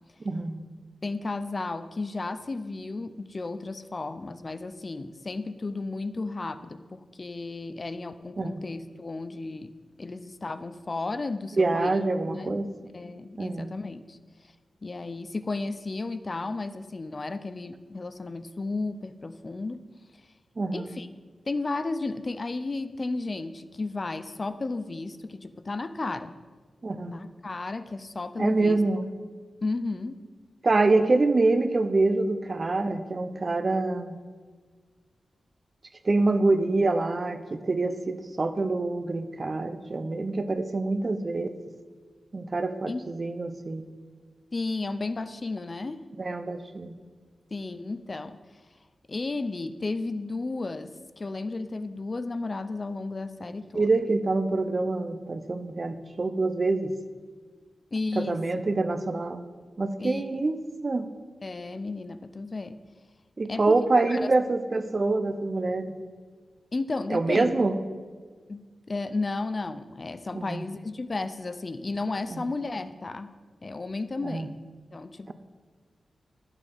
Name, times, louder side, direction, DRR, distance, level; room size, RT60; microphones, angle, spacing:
voice 1, 0.2-0.6 8.4-8.5 11.6-12.7 13.4-13.7 20.6-20.9 26.8-27.2 28.4-29.1 30.6-34.2 36.0-41.5 42.3-43.9 46.2-46.9 53.7-56.9 58.2-59.5 59.8-60.6 60.8-61.1 63.4-65.9 67.1-67.7 70.3-70.6 72.3-72.4 74.2-74.5 75.3-75.4, right 3 dB, 35° right, 10 dB, 0.7 m, -26 dB
voice 2, 1.0-9.7 10.0-12.0 12.3-12.6 12.9-14.2 14.8-19.9 20.7-21.1 21.5-26.4 27.0-28.8 29.6-30.2 42.9-43.0 44.5-46.0 47.5-48.4 49.1-53.9 57.9-58.4 60.0-60.4 61.4-62.8 63.5-63.8 64.1-64.3 66.7-67.5 68.5-73.4 73.6-74.5 74.9-75.3, left 3 dB, 35° left, 12 dB, 0.5 m, -33 dB
11.5 x 8.1 x 5.5 m, 1.5 s
wide cardioid pair, 125°, 0 cm